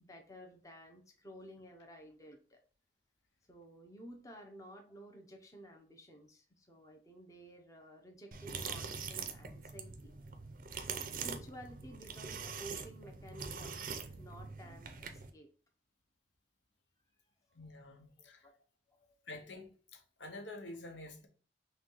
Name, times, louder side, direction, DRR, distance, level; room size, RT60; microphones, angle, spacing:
voice 1, 0.0-2.6 3.5-10.1 11.1-15.5 17.6-17.7 18.2-18.5 18.9-19.2, equal, 20° left, 0.6 m, -53 dB
sound 1, 8.3-15.3, right 5 dB, 50° right, 0.5 m, -43 dB
voice 2, 17.5-18.5 19.3-21.3, left 2 dB, 85° left, 0.9 m, -48 dB
5.9 x 2.3 x 2.9 m
head